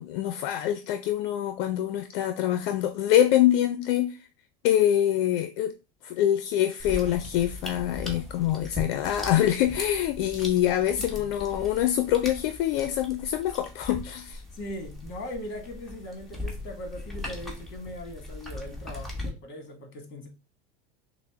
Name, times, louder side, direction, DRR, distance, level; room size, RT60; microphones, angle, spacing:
voice 1, 0.0-4.3 4.6-5.7 6.0-14.4, left 11 dB, 65° left, 0.5 m, -25 dB
sound 1, 6.8-19.3, left 2 dB, ahead, 1.1 m, -39 dB
voice 2, 14.5-20.3, left 1 dB, 40° left, 1.4 m, -40 dB
6.1 x 2.1 x 3.4 m
supercardioid pair, 125°, 30 cm